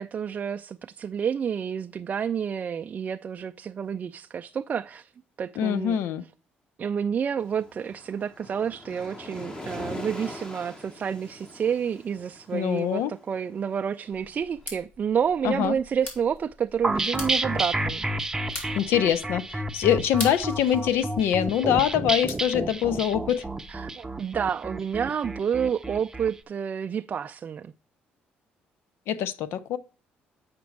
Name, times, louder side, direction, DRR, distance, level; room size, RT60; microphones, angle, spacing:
voice 1, 0.0-5.1 5.4-6.0 6.8-18.1 23.7-27.7, right 7 dB, 40° right, 0.3 m, -29 dB
voice 2, 5.6-6.2 12.5-13.1 15.4-15.7 18.8-23.5 29.1-29.8, left 10 dB, 80° left, 0.6 m, -24 dB
Waves surf, 7.4-14.5, left 1 dB, 20° left, 1.1 m, -42 dB
sound 1, 14.1-23.8, left 2 dB, 55° left, 3.2 m, -43 dB
sound 2, 16.8-26.3, right 2 dB, 10° right, 0.7 m, -30 dB
8.1 x 5.2 x 4.6 m
cardioid pair, 90°, 4 cm